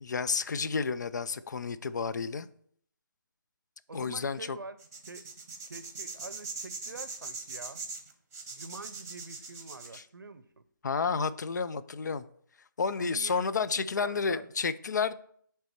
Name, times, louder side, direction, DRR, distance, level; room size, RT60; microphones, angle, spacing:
voice 1, 0.0-2.5 3.9-4.6 9.9-10.0 10.8-12.3 12.8-15.1, left 5 dB, 60° left, 0.4 m, -31 dB
voice 2, 3.9-4.8 5.1-5.3 5.6-7.8 8.5-10.6 13.0-14.5, right 3 dB, 80° right, 0.6 m, -46 dB
sound 1, 4.8-10.0, right 4 dB, 45° right, 1.0 m, -41 dB
7.7 x 3.4 x 4.3 m
figure-of-eight pair, 155°, 11 cm